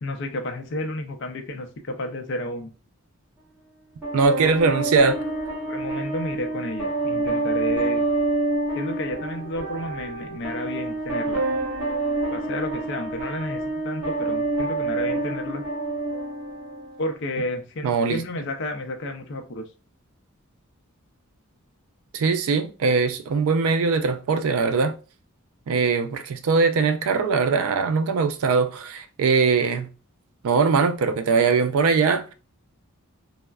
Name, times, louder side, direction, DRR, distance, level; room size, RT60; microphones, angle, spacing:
voice 1, 0.0-2.7 4.4-4.5 5.7-8.0 8.7-11.4 12.3-15.6 17.0-19.6, left 1 dB, 55° left, 0.5 m, -31 dB
sound 1, 4.0-17.0, right 2 dB, 10° right, 1.3 m, -27 dB
voice 2, 4.1-5.2 17.8-18.2 22.1-24.9 25.7-29.9 30.4-32.3, right 4 dB, 70° right, 0.3 m, -21 dB
3.3 x 2.0 x 2.3 m
head